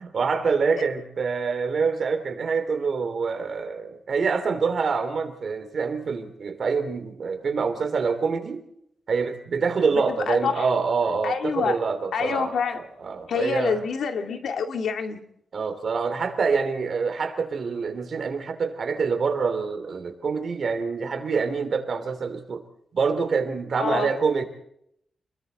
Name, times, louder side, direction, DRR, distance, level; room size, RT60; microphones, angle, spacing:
voice 1, 0.0-8.6 9.1-13.8 15.5-22.6 22.9-24.4, right 5 dB, 50° right, 7 dB, 3.0 m, -26 dB
voice 2, 9.9-10.7 11.2-11.8 12.1-12.8 13.3-15.3 23.8-24.1, left 6 dB, 85° left, 5 dB, 2.2 m, -27 dB
29.0 x 22.0 x 4.1 m, 0.73 s
wide cardioid pair, 165°, 0 cm